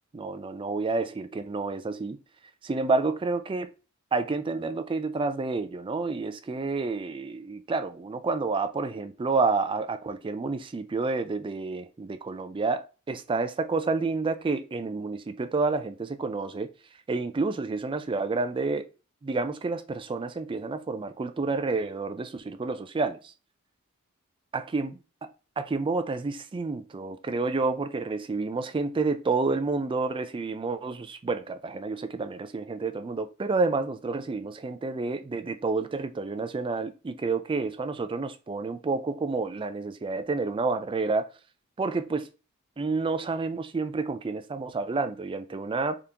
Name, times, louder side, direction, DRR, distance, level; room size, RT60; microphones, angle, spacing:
voice 1, 0.1-2.2 2.6-3.7 4.1-16.7 17.1-18.9 19.2-23.3 24.7-24.9 25.6-41.3 41.8-42.3 42.8-46.0, right 3 dB, 25° right, 0.4 m, -29 dB
3.7 x 3.5 x 2.8 m
head